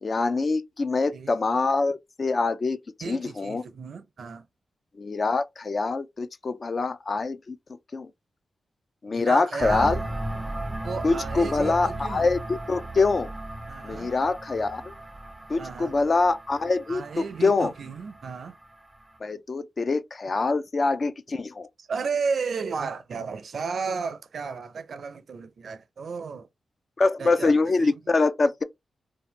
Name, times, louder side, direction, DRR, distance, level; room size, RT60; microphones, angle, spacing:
voice 1, 0.0-2.8 3.1-3.6 4.9-8.1 9.0-10.0 11.0-13.3 13.8-14.9 15.5-17.7 19.2-21.7 27.0-28.6, left 3 dB, 50° left, 0.3 m, -25 dB
voice 2, 3.0-4.5 9.1-10.0 10.8-12.3 13.7-14.1 15.6-15.9 16.9-18.6 21.9-26.5 27.2-27.9, right 5 dB, 70° right, 0.4 m, -33 dB
sound 1, 9.6-19.1, right 1 dB, 15° right, 0.5 m, -36 dB
2.7 x 2.1 x 3.1 m
cardioid pair, 65°, 0 cm